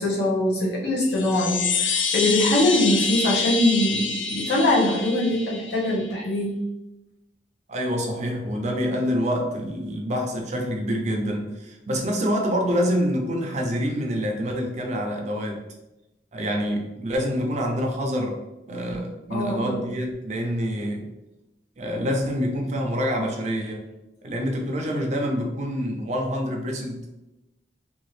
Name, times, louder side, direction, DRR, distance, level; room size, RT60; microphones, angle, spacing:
voice 1, 0.0-6.5 19.3-19.8, left 1 dB, 65° left, -5 dB, 0.9 m, -22 dB
sound 1, 1.0-6.1, left 5 dB, 85° left, 0.4 m, -27 dB
voice 2, 7.7-15.6 16.3-18.4 18.7-21.1 21.8-23.9 24.2-27.1, equal, 40° right, 1 dB, 0.5 m, -26 dB
2.8 x 2.4 x 3.1 m, 0.97 s
head